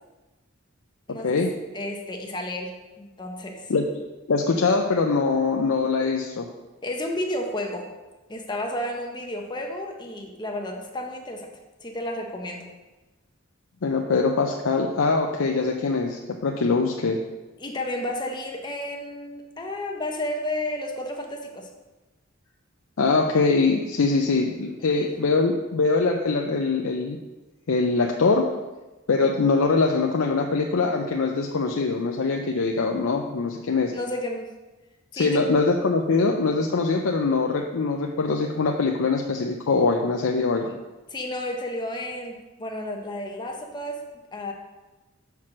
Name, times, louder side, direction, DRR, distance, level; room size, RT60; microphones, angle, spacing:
voice 1, 1.1-1.4 1.7-3.7 6.8-7.9 8.3-11.5 11.8-12.7 17.6-21.7 24.9-25.1 33.9-34.5 35.1-35.5 40.7-40.8 41.1-44.0 44.3-44.5, left 1 dB, 20° left, 2 dB, 0.9 m, -32 dB
voice 2, 4.3-6.5 13.8-17.2 23.0-27.2 27.7-28.5 29.1-33.9 35.1-40.7, left 4 dB, 80° left, 1 dB, 0.5 m, -23 dB
5.9 x 4.7 x 6.0 m, 1.1 s
head